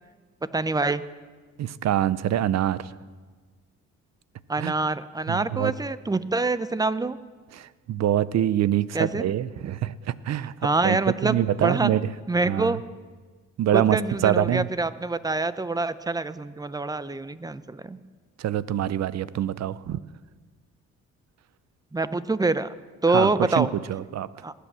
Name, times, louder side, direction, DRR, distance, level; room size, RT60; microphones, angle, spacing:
voice 1, 0.5-1.0 4.5-7.2 8.9-9.2 10.6-11.9 12.3-12.8 13.7-18.0 21.9-22.7 23.0-23.7 24.4-24.5, right 3 dB, 15° right, 15 dB, 0.6 m, -25 dB
voice 2, 1.6-2.8 4.6-4.7 5.3-5.7 7.5-10.0 10.2-10.5 10.8-12.1 12.4-12.8 13.6-14.0 14.2-14.7 18.4-20.0 23.1-24.3, right 11 dB, 60° right, 18 dB, 0.6 m, -25 dB
19.5 x 8.4 x 7.4 m, 1.4 s
cardioid pair, 90°, 30 cm